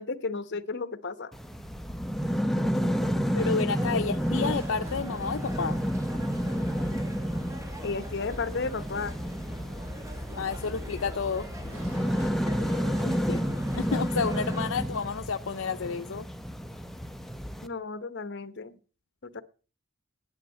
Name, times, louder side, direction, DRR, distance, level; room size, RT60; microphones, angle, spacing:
voice 1, 0.0-1.3 3.9-4.1 7.8-9.1 13.0-13.4 17.6-18.8 19.2-19.4, left 4 dB, 55° left, 13 dB, 1.0 m, -33 dB
sound 1, 1.3-17.7, equal, ahead, 0.7 m, -31 dB
voice 2, 3.3-5.8 10.3-11.5 13.8-16.3, left 5 dB, 70° left, 8 dB, 0.6 m, -30 dB
sound 2, 3.7-14.7, equal, 15° right, 1.5 m, -44 dB
sound 3, 3.7-15.9, left 1 dB, 85° right, 4.9 m, -43 dB
10.5 x 7.2 x 7.8 m, 0.37 s
head